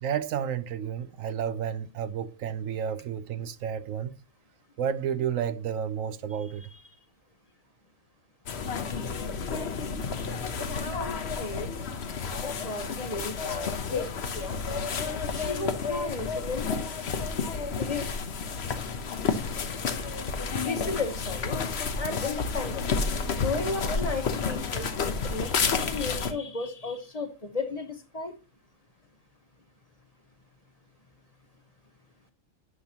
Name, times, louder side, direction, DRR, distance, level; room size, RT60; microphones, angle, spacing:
voice 1, 0.0-4.2 4.8-6.7, right 8 dB, 75° right, 1.1 m, -31 dB
sound 1, 8.5-26.3, left 5 dB, 55° left, 1.1 m, -31 dB
voice 2, 10.8-11.7 12.4-14.1 14.3-14.6 15.3-16.7 17.8-18.1 20.6-21.6 22.0-22.9 23.3-28.3, left 3 dB, 35° left, 0.9 m, -34 dB
9.6 x 5.7 x 2.9 m
omnidirectional pair, 1.4 m